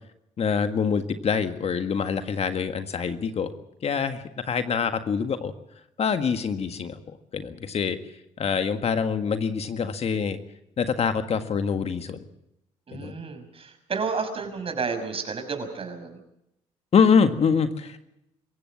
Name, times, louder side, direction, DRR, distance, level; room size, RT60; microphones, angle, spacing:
voice 1, 0.4-3.5 3.8-5.5 6.0-7.0 7.3-8.0 8.4-10.4 10.8-12.2 12.9-13.2 16.9-18.0, left 6 dB, 50° left, 9 dB, 1.8 m, -25 dB
voice 2, 12.9-16.2, right 5 dB, 45° right, 7 dB, 5.9 m, -31 dB
26.0 x 15.5 x 7.3 m, 0.81 s
supercardioid pair, 65°, 14 cm